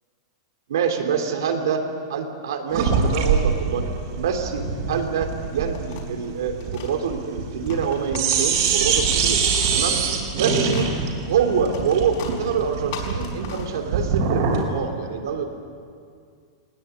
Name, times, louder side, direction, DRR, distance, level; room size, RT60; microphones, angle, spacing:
voice 1, 0.7-1.8 2.1-3.9 4.1-9.4 9.7-10.9 11.3-15.5, right 7 dB, 85° right, 5 dB, 3.3 m, -26 dB
sound 1, 2.7-7.9 8.1-14.7, right 5 dB, 50° right, 4.5 m, -24 dB
sound 2, 5.4-7.0 7.5-10.4 10.7-14.2, left 6 dB, 50° left, 4.8 m, -39 dB
20.5 x 20.0 x 9.9 m, 2.2 s
supercardioid pair, 175°, 2 cm